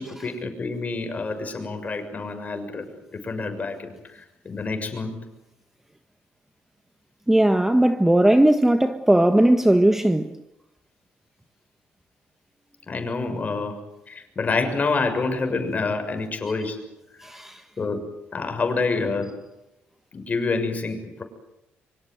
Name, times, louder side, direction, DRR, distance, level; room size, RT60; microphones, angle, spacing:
voice 1, 0.0-5.2 12.9-13.8 14.1-16.8 17.8-18.0 18.3-19.3 20.1-21.2, left 3 dB, 35° left, 6.6 m, -27 dB
voice 2, 7.3-10.4 17.2-17.6, right 1 dB, 10° right, 1.5 m, -18 dB
25.0 x 25.0 x 7.9 m
cardioid pair, 90°, 4 cm